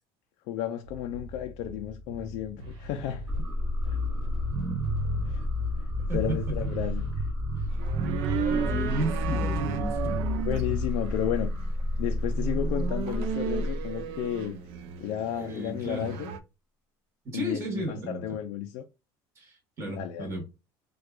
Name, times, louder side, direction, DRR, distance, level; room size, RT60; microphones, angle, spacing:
voice 1, 0.5-3.2 5.3-5.5 6.1-7.1 10.4-11.7 12.0-14.6 15.0-16.3 17.3-18.9 19.9-20.4, left 10 dB, 65° left, 0.4 m, -33 dB
sound 1, 0.8-7.1, right 1 dB, 90° right, 1.0 m, -43 dB
sound 2, 3.3-14.1, left 1 dB, 10° right, 0.5 m, -30 dB
voice 2, 6.0-6.6 8.5-10.2 15.3-16.1 17.2-18.4 19.4-20.4, right 1 dB, 25° right, 1.2 m, -34 dB
sound 3, 7.7-16.4, right 9 dB, 60° right, 0.5 m, -35 dB
4.4 x 2.3 x 2.3 m
cardioid pair, 175°, 10 cm